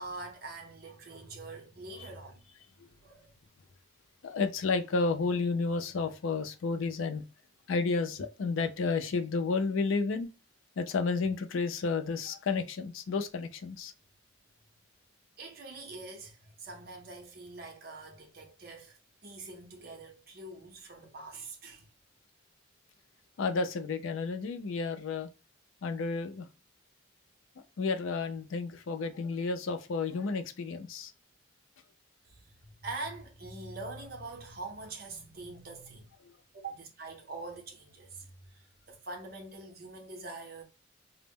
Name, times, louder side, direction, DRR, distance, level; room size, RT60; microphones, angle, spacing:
voice 1, 0.0-2.5 2.8-3.3 15.4-21.9 32.2-36.1 36.5-40.6, right 3 dB, 50° right, 0.7 m, -44 dB
voice 2, 4.2-7.2 7.7-10.3 10.8-13.9 23.4-25.3 25.8-26.5 27.6-31.1, left 4 dB, 90° left, 0.4 m, -31 dB
2.0 x 2.0 x 3.5 m
head